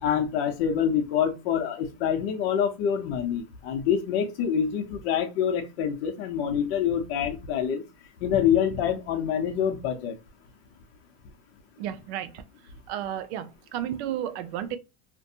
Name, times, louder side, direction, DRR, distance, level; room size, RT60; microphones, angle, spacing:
voice 1, 0.0-7.8 8.2-10.1, left 8 dB, 60° left, 0.6 m, -26 dB
voice 2, 11.8-12.3 12.9-13.5 13.7-14.8, right 11 dB, 65° right, 0.5 m, -32 dB
2.5 x 2.2 x 2.7 m
supercardioid pair, 150°, 35 cm